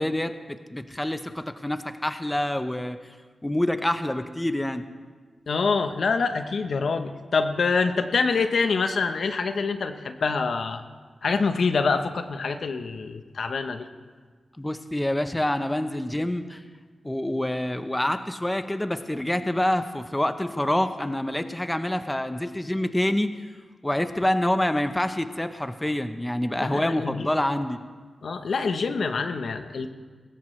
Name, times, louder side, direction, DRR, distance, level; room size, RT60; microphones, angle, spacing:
voice 1, 0.0-3.1 3.4-4.8 14.6-16.6 17.0-23.5 23.8-27.8, left 1 dB, 15° left, 9 dB, 0.9 m, -27 dB
voice 2, 5.5-10.8 11.2-13.9 26.6-27.3 28.2-29.9, left 4 dB, 75° left, 8 dB, 0.9 m, -26 dB
24.0 x 13.5 x 3.3 m, 1.5 s
cardioid pair, 60°, 0 cm